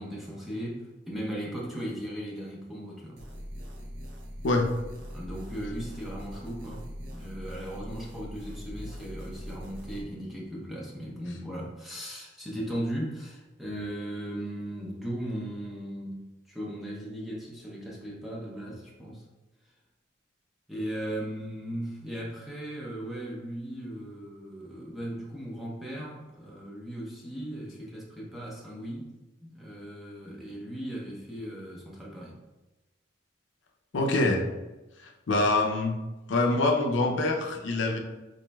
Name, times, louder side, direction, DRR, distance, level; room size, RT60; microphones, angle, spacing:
voice 1, 0.0-3.2 5.1-19.2 20.7-29.1 29.4-32.4, equal, ahead, -5 dB, 0.6 m, -37 dB
sound 1, 3.2-10.0, equal, 70° right, 0.7 m, -41 dB
voice 2, 33.9-34.4 35.3-36.0 36.3-38.0, left 2 dB, 85° left, 3 dB, 0.5 m, -24 dB
4.1 x 3.0 x 2.2 m, 1.1 s
head